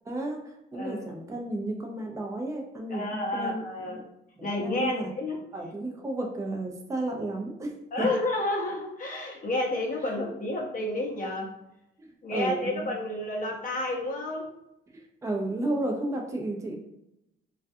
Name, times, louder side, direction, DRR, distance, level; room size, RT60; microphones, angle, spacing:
voice 1, 0.0-0.4 0.7-4.0 4.4-5.1 5.5-7.7 8.0-8.1 10.1-10.3 12.0-12.9 14.9-16.8, right 2 dB, 15° right, 1 dB, 0.5 m, -33 dB
voice 2, 0.7-1.0 2.9-4.0 4.4-5.4 7.9-11.5 12.2-14.5, left 2 dB, 40° left, -1 dB, 0.7 m, -30 dB
2.3 x 2.2 x 2.6 m, 0.86 s
cardioid pair, 90°, 20 cm